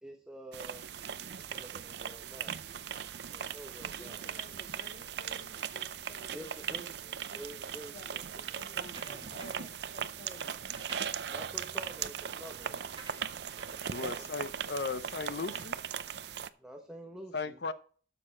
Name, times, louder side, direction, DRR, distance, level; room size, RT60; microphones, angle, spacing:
voice 1, 0.0-0.8 1.3-2.6 3.3-4.2 6.3-8.4 11.3-12.9 13.7-13.8 14.1-14.3 16.6-17.6, right 1 dB, 5° right, 1.0 m, -48 dB
sound 1, 0.5-16.5, right 8 dB, 65° right, 0.5 m, -39 dB
voice 2, 4.0-7.2 7.9-8.2 8.6-10.7, left 1 dB, 40° left, 1.8 m, -53 dB
sound 2, 9.0-9.8 10.5-15.2, right 3 dB, 30° right, 1.9 m, -53 dB
voice 3, 13.9-15.8 17.3-17.7, left 4 dB, 65° left, 0.7 m, -36 dB
12.5 x 6.7 x 4.4 m
head